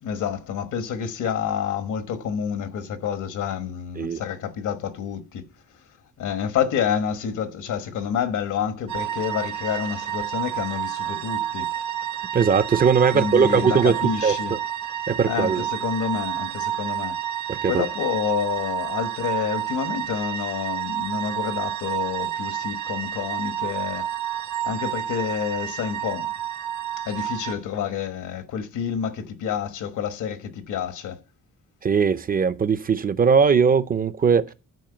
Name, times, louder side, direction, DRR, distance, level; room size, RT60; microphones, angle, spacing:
voice 1, 0.0-5.5 6.2-11.7 13.1-14.5 15.2-17.2 17.7-24.1 24.6-26.3 27.0-31.2, left 8 dB, 75° left, 1.3 m, -28 dB
sound 1, 8.9-27.5, right 10 dB, 75° right, 1.2 m, -30 dB
voice 2, 12.3-13.9 14.2-14.6 15.1-15.6 17.5-17.8 31.8-34.5, right 6 dB, 30° right, 0.5 m, -20 dB
10.5 x 4.5 x 7.8 m
cardioid pair, 170°, 30 cm